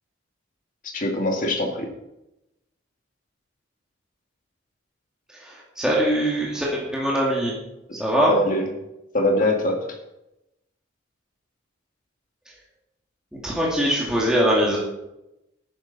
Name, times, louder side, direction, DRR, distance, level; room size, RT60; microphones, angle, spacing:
voice 1, 0.9-1.9 8.3-8.7 9.1-9.9, left 1 dB, 40° left, 2 dB, 2.2 m, -22 dB
voice 2, 5.3-7.6 8.0-8.3 13.4-14.8, equal, 5° right, -5 dB, 2.2 m, -22 dB
13.0 x 10.0 x 4.2 m, 0.89 s
head